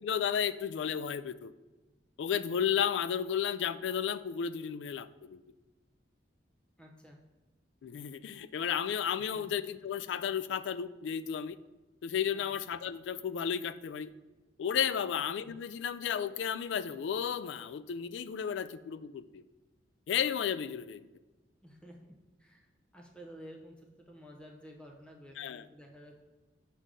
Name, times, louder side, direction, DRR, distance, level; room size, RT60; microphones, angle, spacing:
voice 1, 0.0-1.5 2.2-5.4 7.8-11.6 12.0-14.1 14.6-19.4 20.1-21.1 25.4-25.7, left 8 dB, 80° left, 15 dB, 0.3 m, -33 dB
voice 2, 6.8-7.2 9.3-9.5 12.3-12.5 15.0-15.2 21.6-22.0 22.4-22.7 22.9-26.2, equal, 5° left, 1 dB, 0.7 m, -52 dB
6.3 x 5.3 x 3.8 m, 1.2 s
head